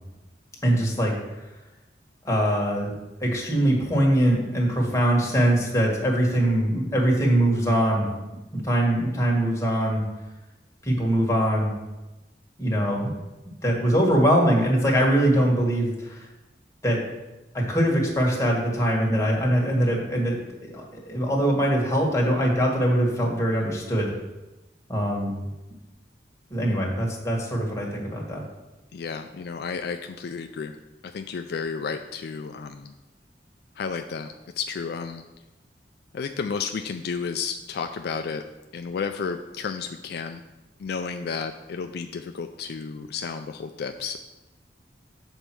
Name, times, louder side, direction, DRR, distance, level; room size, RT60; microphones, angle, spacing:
voice 1, 0.6-1.1 2.2-2.9 3.2-8.1 8.5-10.0 10.8-11.7 12.6-13.1 13.6-16.3 16.8-17.0 17.5-24.1 24.9-25.4 26.5-28.4, right 1 dB, 20° left, -2 dB, 1.6 m, -22 dB
voice 2, 28.9-30.8 31.0-32.9 33.8-35.2 36.1-38.4 38.7-40.4 40.8-44.2, left 5 dB, 65° left, 6 dB, 0.4 m, -32 dB
7.1 x 4.4 x 6.1 m, 1.1 s
head